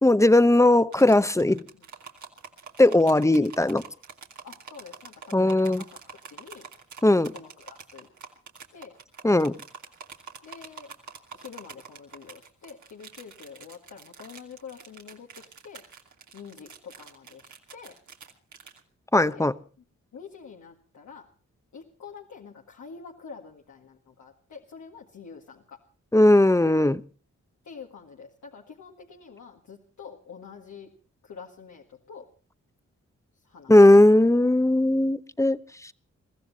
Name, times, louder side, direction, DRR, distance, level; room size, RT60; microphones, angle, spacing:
voice 1, 0.0-1.6 2.8-3.8 5.3-5.8 7.0-7.3 9.2-9.5 19.1-19.5 26.1-27.0 33.7-35.9, left 1 dB, 10° left, 14 dB, 0.9 m, -18 dB
sound 1, 0.9-18.8, right 5 dB, 80° right, 2.7 m, -46 dB
voice 2, 1.4-1.9 4.4-6.7 7.3-8.1 8.7-8.9 10.4-10.9 11.3-15.8 16.3-18.0 19.2-19.5 20.1-21.3 21.7-25.8 27.6-30.9 31.2-32.3 33.4-33.7, left 6 dB, 80° left, 0 dB, 1.8 m, -46 dB
22.5 x 15.0 x 4.1 m, 0.38 s
cardioid pair, 60°, 29 cm